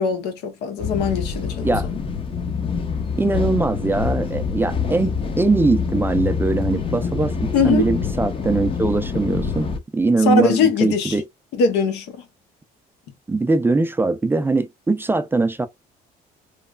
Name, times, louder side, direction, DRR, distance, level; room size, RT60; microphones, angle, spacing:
voice 1, 0.0-2.0 7.5-7.8 10.3-11.2 11.5-12.2, left 5 dB, 85° left, 0.8 m, -21 dB
sound 1, 0.8-9.8, left 6 dB, 30° left, 0.6 m, -26 dB
voice 2, 3.2-11.2 13.3-15.7, right 3 dB, 15° right, 0.4 m, -21 dB
3.1 x 2.0 x 2.3 m
cardioid pair, 110°, 17 cm